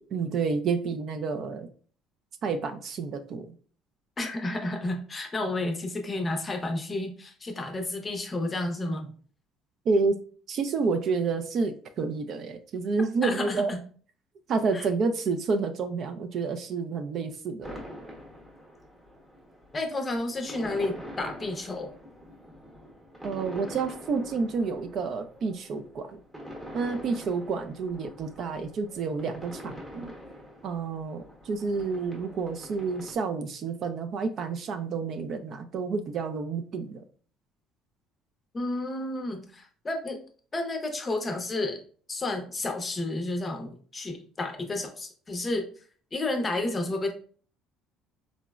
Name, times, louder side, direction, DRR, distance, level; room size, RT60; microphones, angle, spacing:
voice 1, 0.1-1.7 2.4-3.5 9.9-10.2 10.5-13.7 14.5-17.8 23.2-26.2 26.7-30.1 30.6-37.0, right 4 dB, 50° right, 8 dB, 0.3 m, -29 dB
voice 2, 4.2-9.1 13.2-13.8 14.7-14.9 19.7-21.9 38.5-40.2 40.5-41.8 42.1-45.6 46.1-47.1, left 2 dB, 20° left, 4 dB, 0.5 m, -31 dB
sound 1, 17.6-33.1, equal, 10° right, 0.8 m, -45 dB
3.8 x 2.0 x 2.3 m, 0.44 s
cardioid pair, 130°, 0 cm